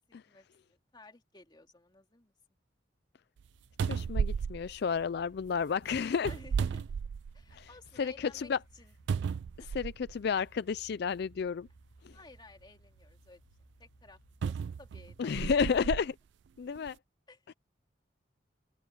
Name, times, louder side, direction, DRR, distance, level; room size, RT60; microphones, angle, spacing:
voice 1, 0.1-2.3 6.3-6.9 7.3-8.9 9.6-9.7 12.1-13.4 13.8-16.0 17.3-17.5, left 2 dB, 25° left, 2.7 m, -55 dB
sound 1, 3.4-3.5 3.8-5.5 6.2-7.6 8.0-8.1 9.1-10.2 11.1-11.2 14.4-16.1 16.8-16.9, right 6 dB, 65° right, 0.3 m, -34 dB
Musical instrument, 3.5-15.5, equal, 90° left, 5.7 m, -63 dB
voice 2, 3.9-6.3 7.5-7.7 8.0-8.6 9.7-11.7 12.0-12.1 15.2-16.1 16.6-17.0, left 6 dB, 60° left, 0.4 m, -31 dB
open air
head